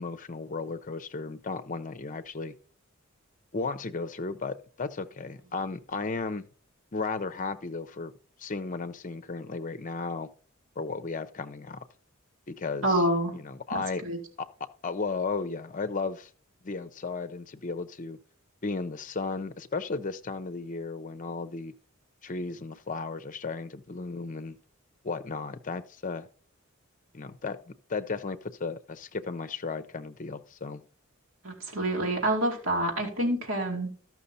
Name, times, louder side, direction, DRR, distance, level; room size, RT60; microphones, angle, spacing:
voice 1, 0.0-2.5 3.5-6.5 6.9-8.1 8.4-10.3 10.8-11.8 12.5-13.0 13.3-14.0 14.4-14.5 14.8-16.3 16.6-18.2 18.6-21.7 22.2-24.6 25.0-26.3 27.1-30.8, left 4 dB, 40° left, 0.6 m, -34 dB
voice 2, 12.8-13.3 13.7-14.2 31.4-33.9, right 1 dB, 75° right, 2.6 m, -27 dB
13.0 x 6.1 x 4.1 m
head